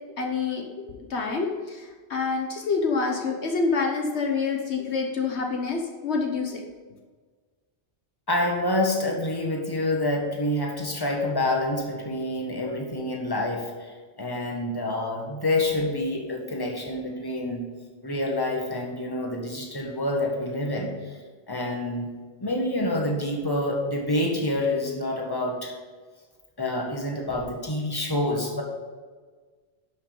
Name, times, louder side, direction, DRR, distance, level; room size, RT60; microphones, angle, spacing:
voice 1, 0.2-6.6, left 4 dB, 70° left, 2 dB, 1.3 m, -27 dB
voice 2, 8.3-13.9 14.2-17.6 18.0-20.9 21.5-22.1 22.4-25.7 26.6-28.6, left 1 dB, 20° left, 0 dB, 1.6 m, -27 dB
11.5 x 6.0 x 5.4 m, 1.4 s
omnidirectional pair, 1.2 m